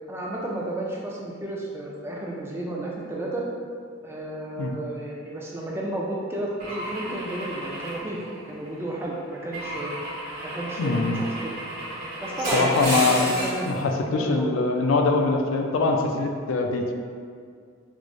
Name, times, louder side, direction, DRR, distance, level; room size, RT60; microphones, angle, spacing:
voice 1, 0.1-3.5 4.0-8.2 8.5-9.9 10.4-11.5 12.2-14.5, right 1 dB, 10° right, -3 dB, 0.3 m, -32 dB
Car / Engine / Glass, 6.6-8.8 9.5-13.7, right 1 dB, 45° right, 1.1 m, -32 dB
voice 2, 10.8-11.2 12.5-13.4 13.7-16.9, left 3 dB, 70° left, 3 dB, 0.3 m, -23 dB
4.6 x 2.0 x 2.5 m, 2.1 s
head